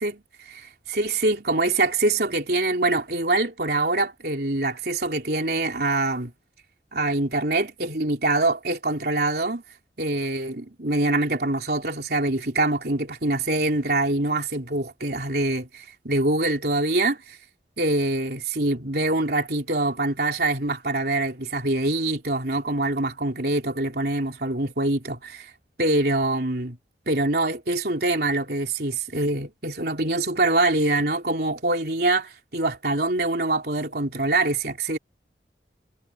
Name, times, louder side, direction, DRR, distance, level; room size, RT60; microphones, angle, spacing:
voice 1, 0.5-6.3 6.9-9.6 10.0-17.4 17.8-25.5 25.8-26.8 27.1-35.0, right 2 dB, 60° right, 3.8 m, -24 dB
head